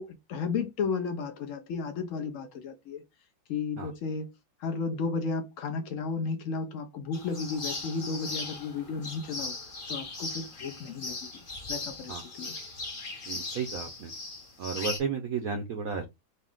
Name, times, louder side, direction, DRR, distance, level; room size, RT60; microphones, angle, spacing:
voice 1, 0.0-3.0 3.5-4.3 4.6-9.5 9.9-11.3 11.7-12.5, left 5 dB, 90° left, 0.7 m, -33 dB
sound 1, 7.1-15.0, left 3 dB, 40° left, 0.8 m, -38 dB
voice 2, 13.3-14.1 14.6-16.0, right 6 dB, 70° right, 0.8 m, -33 dB
4.1 x 2.4 x 3.5 m
omnidirectional pair, 2.1 m